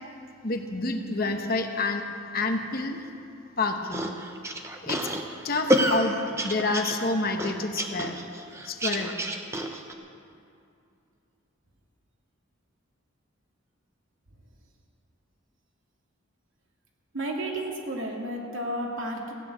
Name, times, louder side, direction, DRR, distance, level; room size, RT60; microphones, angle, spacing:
voice 1, 0.4-2.1 2.3-3.0 3.6-4.1 4.8-5.1 5.4-6.2 6.4-8.2 8.6-9.1, left 3 dB, 45° left, 5 dB, 1.1 m, -28 dB
sound 1, 3.9-9.9, right 1 dB, 15° right, 0.8 m, -28 dB
voice 2, 17.1-19.3, right 1 dB, 70° right, 0 dB, 2.3 m, -32 dB
15.5 x 8.8 x 8.6 m, 2.5 s
head